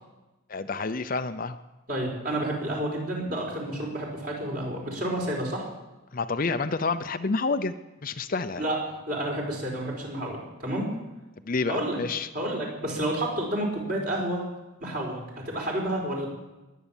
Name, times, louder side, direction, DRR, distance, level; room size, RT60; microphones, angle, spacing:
voice 1, 0.5-1.6 6.1-7.7 8.0-8.6 11.4-12.3, left 4 dB, 40° left, 10 dB, 0.6 m, -28 dB
voice 2, 1.9-5.7 8.6-8.8 9.1-10.9 11.7-12.0 12.3-14.4 14.8-16.3, right 1 dB, 45° right, -1 dB, 4.9 m, -30 dB
21.5 x 9.3 x 7.2 m, 1.1 s
head